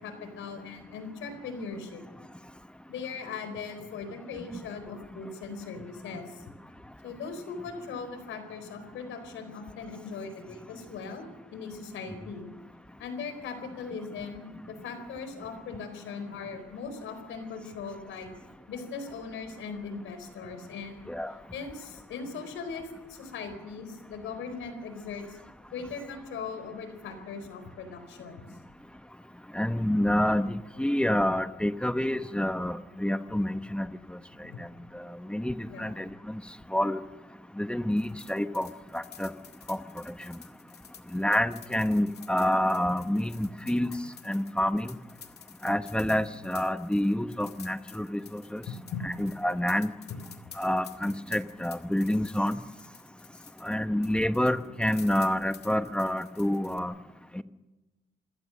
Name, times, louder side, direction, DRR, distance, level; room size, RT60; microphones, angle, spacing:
voice 1, 0.0-2.0 2.9-6.4 7.0-11.2 11.5-12.5 13.0-18.3 18.7-21.0 21.5-25.4 25.7-28.5 34.4-34.6 35.7-36.0 48.7-49.1, left 5 dB, 80° left, 9 dB, 4.5 m, -39 dB
voice 2, 29.5-33.9 34.6-34.7 35.3-36.4 36.7-37.0 37.6-38.7 38.9-39.3 39.7-39.8 41.1-43.9 44.3-44.9 45.6-48.6 49.0-49.9 50.6-52.6 53.6-57.0 57.3-57.4, left 1 dB, 5° left, 10 dB, 1.1 m, -28 dB
sound 1, 37.9-53.8 54.0-56.8, left 8 dB, 55° left, 2.2 m, -51 dB
26.5 x 17.0 x 6.5 m, 1.1 s
cardioid pair, 90°, 20 cm